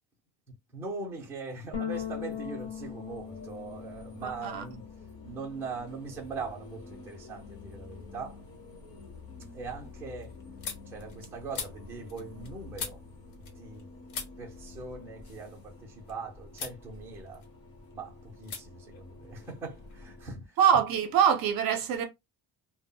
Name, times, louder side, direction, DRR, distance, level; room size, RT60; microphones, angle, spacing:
voice 1, 0.7-4.9 5.2-8.4 9.5-10.4 10.9-13.0 13.6-13.9 14.4-17.4 17.9-20.6, right 4 dB, 5° right, 0.5 m, -41 dB
sound 1, 1.7-6.3 6.6-8.0, left 8 dB, 50° left, 1.1 m, -41 dB
sound 2, 1.9-20.4, left 3 dB, 30° left, 0.7 m, -49 dB
voice 2, 4.2-4.6 20.6-22.0, right 8 dB, 50° right, 0.6 m, -24 dB
sound 3, 7.9-8.4 8.8-13.8 14.1-16.1 16.5-16.8 17.2-17.9 18.4-18.6 18.9-19.9, left 6 dB, 80° left, 1.0 m, -43 dB
2.1 x 2.0 x 3.6 m
cardioid pair, 175°, 47 cm